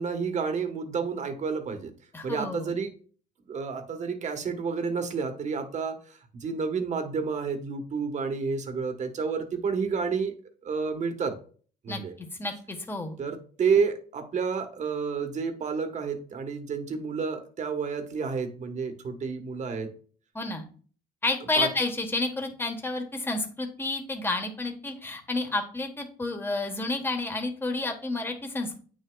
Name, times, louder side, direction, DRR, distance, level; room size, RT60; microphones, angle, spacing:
voice 1, 0.0-1.9 2.2-2.9 3.5-10.3 10.6-11.3 11.8-12.1 13.2-19.9 21.6-21.7, right 5 dB, 45° right, 6 dB, 1.4 m, -30 dB
voice 2, 2.1-2.7 11.9-13.2 20.3-20.6 21.2-28.8, left 2 dB, 15° left, 4 dB, 1.4 m, -30 dB
8.9 x 6.4 x 2.4 m, 0.42 s
cardioid pair, 110°, 17 cm